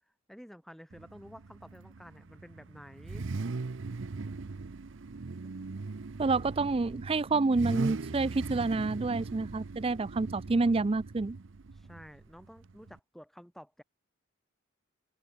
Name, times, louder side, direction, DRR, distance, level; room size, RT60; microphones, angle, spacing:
voice 1, 0.3-3.3 11.7-13.8, equal, ahead, 1.8 m, -51 dB
Car / Idling / Accelerating revving vroom, 0.9-13.0, right 3 dB, 65° right, 0.6 m, -40 dB
voice 2, 6.2-11.4, right 3 dB, 25° right, 0.4 m, -28 dB
head